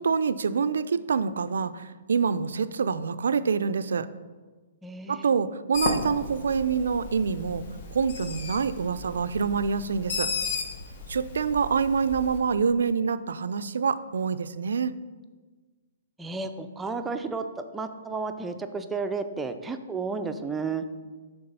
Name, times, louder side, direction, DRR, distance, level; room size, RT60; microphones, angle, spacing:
voice 1, 0.0-4.1 5.1-7.6 7.9-10.3 11.1-14.9, right 5 dB, 80° right, 13 dB, 0.3 m, -26 dB
voice 2, 4.8-5.3 16.2-20.8, right 4 dB, 10° right, 7 dB, 0.4 m, -32 dB
Bird, 5.7-12.4, left 4 dB, 55° left, 0.9 m, -35 dB
6.9 x 3.5 x 5.4 m, 1.3 s
hypercardioid pair, 145°, 0 cm